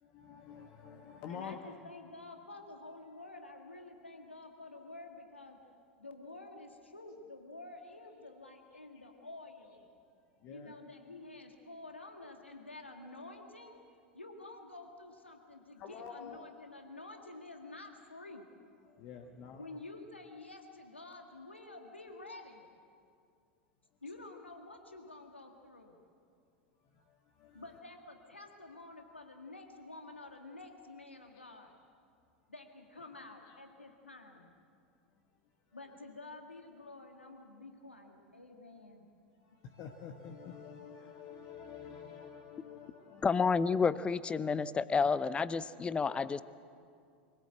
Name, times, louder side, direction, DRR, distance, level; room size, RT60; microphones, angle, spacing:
voice 1, 0.0-1.6 10.4-10.7 15.8-16.5 18.9-19.6 27.1-27.6 39.4-43.4, left 7 dB, 45° left, 4 dB, 1.4 m, -48 dB
voice 2, 1.3-5.6 6.0-9.9 10.4-13.8 14.1-18.4 19.6-22.6 24.0-26.0 27.5-31.8 32.5-34.5 35.7-39.1, left 2 dB, 90° left, 4 dB, 1.8 m, -50 dB
voice 3, 43.2-46.4, left 5 dB, 15° left, 17 dB, 0.6 m, -30 dB
24.5 x 17.0 x 8.0 m, 2.4 s
figure-of-eight pair, 85°, 6 cm